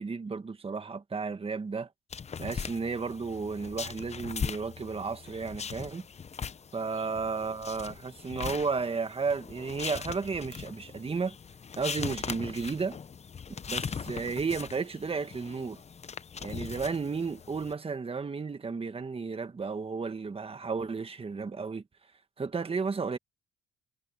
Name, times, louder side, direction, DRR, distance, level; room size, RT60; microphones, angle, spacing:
voice 1, 0.0-1.9 2.4-6.0 6.7-11.3 11.8-13.0 13.7-15.8 16.4-21.8 22.4-23.2, right 4 dB, 30° right, 1.6 m, -33 dB
sound 1, 2.1-17.7, left 6 dB, 35° left, 0.8 m, -40 dB
cardioid pair, 90°, 20 cm